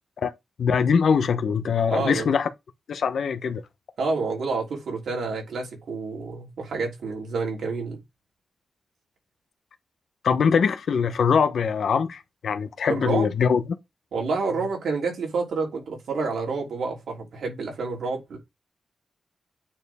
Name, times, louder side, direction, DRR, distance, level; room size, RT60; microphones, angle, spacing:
voice 1, 0.6-2.5 2.9-3.6 10.2-13.6, left 6 dB, 75° left, 0.9 m, -22 dB
voice 2, 1.9-2.3 4.0-8.0 12.9-13.3 14.1-18.4, right 4 dB, 85° right, 3.3 m, -28 dB
8.9 x 4.5 x 3.5 m
wide cardioid pair, 120°, 0 cm